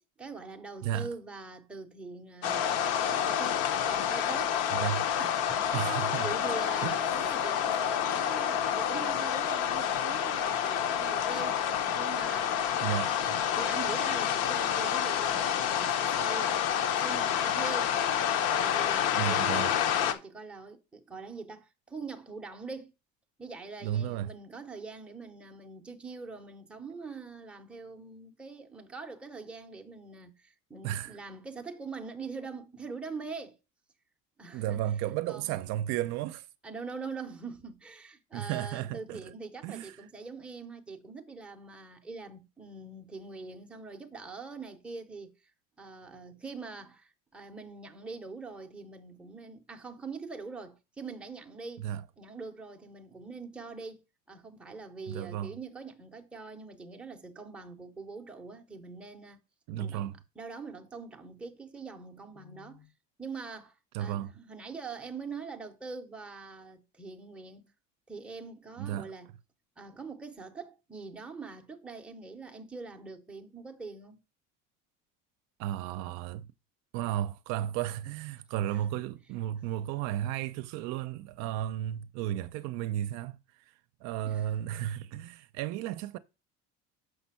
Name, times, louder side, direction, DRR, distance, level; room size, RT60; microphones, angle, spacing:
voice 1, 0.2-2.7 3.3-4.6 5.2-6.0 6.2-11.6 11.9-12.6 12.9-16.7 17.0-18.0 18.6-22.9 23.4-33.6 34.4-34.8 35.3-35.6 36.6-45.4 45.8-51.9 52.2-54.0 54.3-59.4 59.8-62.9 63.2-67.6 68.1-69.3 69.8-74.2 78.7-78.8 84.2-84.5, right 4 dB, 5° right, 0.7 m, -43 dB
sound 1, 2.4-20.1, left 9 dB, 55° left, 0.8 m, -28 dB
voice 2, 4.7-5.1 5.7-6.5 6.8-7.0 12.8-13.4 19.2-19.7 23.8-24.3 30.8-31.2 34.5-36.5 38.3-39.3 39.6-39.9 51.8-52.0 55.1-55.5 59.7-60.2 63.9-64.3 68.8-69.1 75.6-76.5 76.9-83.4 84.0-86.2, right 11 dB, 65° right, 0.6 m, -33 dB
6.7 x 5.4 x 5.6 m
cardioid pair, 175°, 30 cm